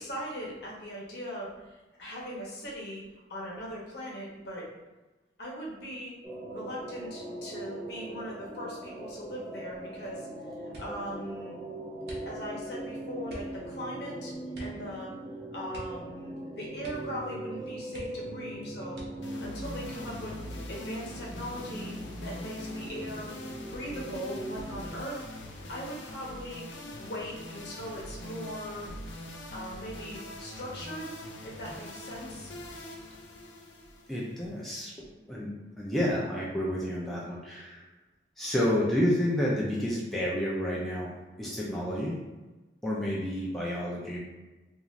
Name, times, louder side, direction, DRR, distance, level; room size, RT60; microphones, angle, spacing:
voice 1, 0.0-3.0 3.3-4.6 5.4-6.2 6.5-10.3 10.8-11.6 12.3-14.3 14.6-15.1 15.5-19.0 19.4-20.4 20.7-21.9 22.2-23.3 23.7-25.2 25.7-26.6 27.0-28.9 29.5-31.1 31.4-32.5, equal, 65° left, -4 dB, 0.8 m, -39 dB
sound 1, 6.2-24.9, right 1 dB, 20° right, 0.7 m, -41 dB
sound 2, 10.7-11.1 12.0-12.7 13.2-13.6 14.5-14.9 15.1-15.2 15.7-16.4 16.8-17.2 17.5-17.6 17.9-18.4 18.9-19.4 20.2-20.8 21.2-21.5, equal, 60° right, 0.7 m, -47 dB
sound 3, 19.2-34.6, left 1 dB, 90° left, 0.4 m, -43 dB
voice 2, 34.1-37.8 38.4-41.1 41.4-42.1 42.8-44.2, equal, ahead, -6 dB, 0.4 m, -30 dB
2.5 x 2.4 x 3.1 m, 1.1 s
head